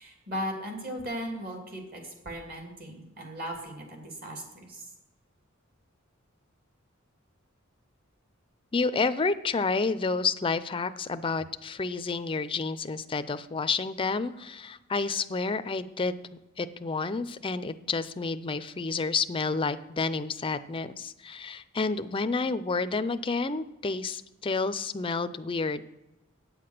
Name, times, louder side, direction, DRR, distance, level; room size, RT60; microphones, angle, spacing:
voice 1, 0.0-4.8, equal, 50° right, 2 dB, 2.7 m, -37 dB
voice 2, 8.7-16.2 16.6-25.9, left 4 dB, 25° left, 12 dB, 0.5 m, -30 dB
9.1 x 7.7 x 6.6 m, 0.98 s
head